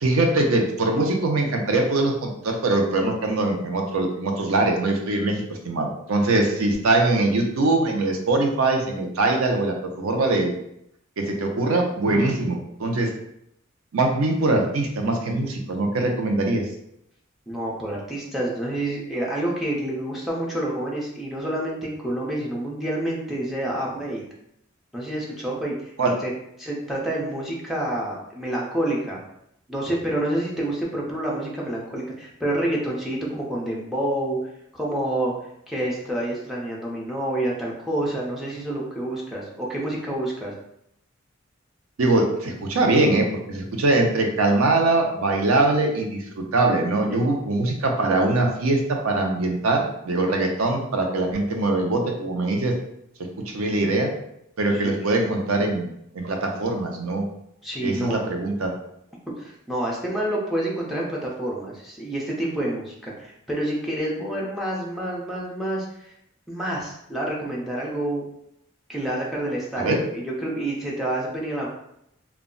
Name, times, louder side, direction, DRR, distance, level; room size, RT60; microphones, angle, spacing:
voice 1, 0.0-10.5 11.2-13.1 13.9-16.6 26.0-26.2 42.0-52.7 53.5-54.1 54.6-55.9 56.1-57.2 57.8-58.7 69.8-70.0, right 2 dB, 85° right, 2 dB, 0.5 m, -22 dB
voice 2, 17.5-24.2 24.9-25.9 26.2-26.3 26.6-29.2 29.7-34.4 34.7-35.3 35.7-40.6 47.1-47.2 54.7-55.2 57.6-58.2 59.4-66.1 66.5-68.3 68.9-71.7, right 1 dB, ahead, -5 dB, 0.5 m, -28 dB
2.2 x 2.0 x 3.7 m, 0.76 s
head